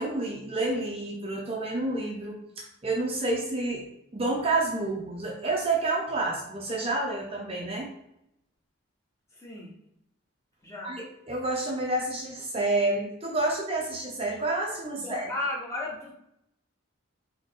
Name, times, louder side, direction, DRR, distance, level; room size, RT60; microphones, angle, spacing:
voice 1, 0.0-3.8 4.1-7.9 10.8-15.3, right 2 dB, 30° right, -1 dB, 0.5 m, -29 dB
voice 2, 9.4-9.7 10.6-11.0 15.0-16.1, left 2 dB, 15° left, -4 dB, 1.0 m, -34 dB
4.1 x 2.8 x 3.6 m, 0.79 s
head